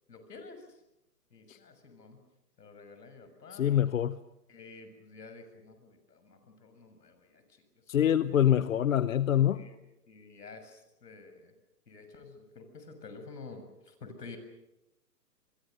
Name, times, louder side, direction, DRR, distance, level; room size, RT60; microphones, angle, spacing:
voice 1, 0.1-0.8 1.3-2.2 2.6-3.7 4.5-7.6 9.5-9.8 10.1-11.5 11.9-14.4, left 4 dB, 75° left, 8 dB, 6.9 m, -50 dB
voice 2, 3.5-4.2 7.9-9.6, left 10 dB, 55° left, 15 dB, 0.9 m, -25 dB
27.5 x 22.5 x 6.7 m, 0.93 s
hypercardioid pair, 150°, 49 cm